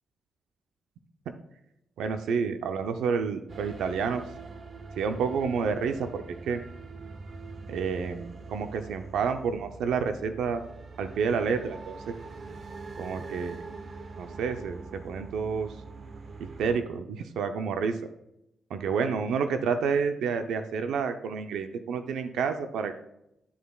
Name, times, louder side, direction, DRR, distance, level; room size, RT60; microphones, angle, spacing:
voice 1, 2.0-4.2 5.0-6.6 7.7-10.6 11.0-12.1 13.0-13.6 14.2-15.7 16.4-18.0 18.7-22.9, right 6 dB, 85° right, 8 dB, 0.6 m, -29 dB
sound 1, 3.5-16.8, right 4 dB, 35° right, 0.6 m, -43 dB
11.0 x 6.8 x 2.4 m, 0.81 s
wide cardioid pair, 175°, 0 cm